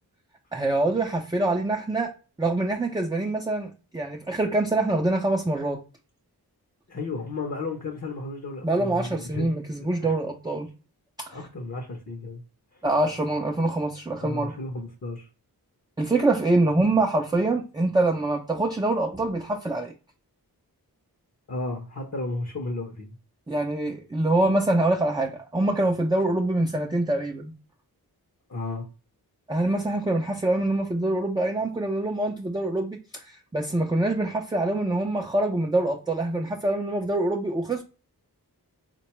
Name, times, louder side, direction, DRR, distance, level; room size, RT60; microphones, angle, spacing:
voice 1, 0.5-2.1 2.4-5.8 8.6-10.7 11.2-11.4 12.8-14.5 16.0-19.9 23.5-27.5 29.5-33.0 33.2-37.8, right 2 dB, 10° right, 0.3 m, -25 dB
voice 2, 6.9-9.5 10.0-10.1 11.3-12.4 12.7-12.8 14.2-15.3 21.5-23.1 28.5-28.8, left 2 dB, 45° left, 0.7 m, -33 dB
3.8 x 2.2 x 2.9 m
wide cardioid pair, 60°, 38 cm